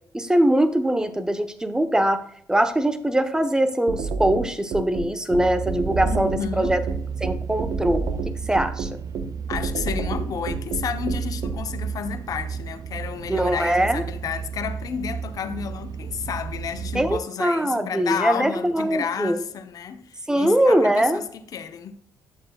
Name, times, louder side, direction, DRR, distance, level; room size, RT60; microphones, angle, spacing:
voice 1, 0.1-2.2 2.5-6.8 7.2-8.9 13.3-14.0 16.9-19.4 20.3-21.2, right 1 dB, 10° right, 1.1 m, -22 dB
sound 1, 3.9-11.6, right 4 dB, 75° right, 1.1 m, -29 dB
sound 2, 5.3-17.2, right 6 dB, 60° right, 0.5 m, -33 dB
voice 2, 6.0-6.8 9.5-22.0, left 7 dB, 60° left, 0.9 m, -31 dB
11.5 x 7.5 x 2.4 m
cardioid pair, 75°, 7 cm